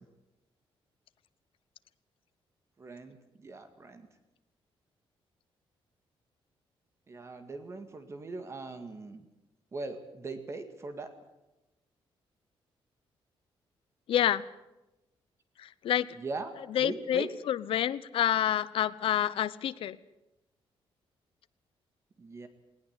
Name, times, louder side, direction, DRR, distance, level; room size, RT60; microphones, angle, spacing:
voice 1, 2.8-4.1 7.1-9.3 9.7-11.1 16.1-16.5 16.8-17.3 22.2-22.5, right 3 dB, 30° right, 8 dB, 2.0 m, -40 dB
voice 2, 14.1-14.4 15.6-16.2 16.7-20.0, left 11 dB, 70° left, 14 dB, 0.9 m, -28 dB
19.5 x 18.5 x 8.3 m, 0.97 s
cardioid pair, 160°, 10 cm